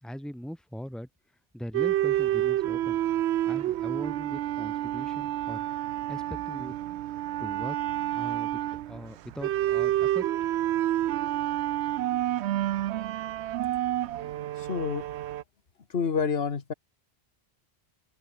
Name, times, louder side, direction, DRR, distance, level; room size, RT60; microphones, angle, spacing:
voice 1, 0.0-1.1 1.5-3.0 3.5-5.6 6.1-7.0 7.4-7.8 8.1-8.6 8.9-10.3, equal, ahead, 2.7 m, -40 dB
sound 1, 1.7-15.4, right 13 dB, 85° right, 0.8 m, -29 dB
voice 2, 14.6-15.0 15.9-16.7, left 6 dB, 65° left, 1.7 m, -28 dB
open air
omnidirectional pair, 1.1 m